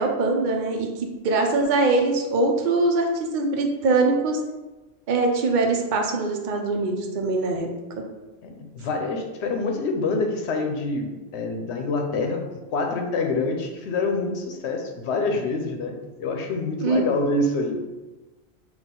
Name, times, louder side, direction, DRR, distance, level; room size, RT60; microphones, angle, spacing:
voice 1, 0.0-4.4 5.1-7.7 16.8-17.0, right 3 dB, 55° right, 2 dB, 0.7 m, -22 dB
voice 2, 8.4-17.8, left 3 dB, 90° left, 3 dB, 0.9 m, -26 dB
4.1 x 2.5 x 3.7 m, 1.1 s
omnidirectional pair, 1.1 m